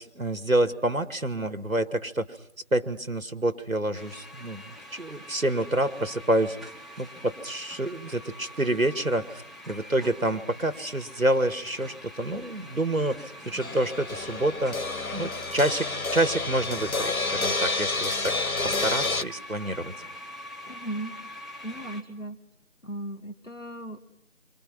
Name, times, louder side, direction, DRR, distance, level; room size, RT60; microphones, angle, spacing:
voice 1, 0.0-2.3 2.7-6.6 7.0-14.8 15.1-18.3 18.6-19.9, right 1 dB, 80° right, 9 dB, 2.2 m, -28 dB
sound 1, 3.9-22.0, equal, ahead, 1.1 m, -44 dB
sound 2, 13.6-19.2, left 3 dB, 85° left, 1.1 m, -29 dB
voice 2, 20.7-21.1 21.6-22.4 22.8-24.0, right 1 dB, 65° left, 5 dB, 2.3 m, -36 dB
28.0 x 25.5 x 5.8 m, 0.71 s
figure-of-eight pair, 180°, 41 cm